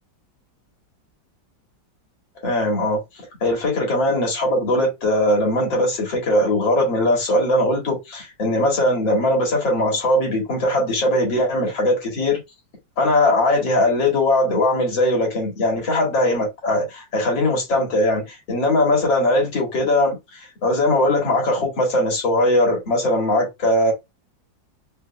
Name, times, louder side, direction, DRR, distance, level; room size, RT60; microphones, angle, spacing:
voice 1, 2.4-3.0 3.4-12.4 13.0-23.9, left 1 dB, 85° left, 2.6 m, -20 dB
4.8 x 2.9 x 2.3 m
omnidirectional pair, 2.0 m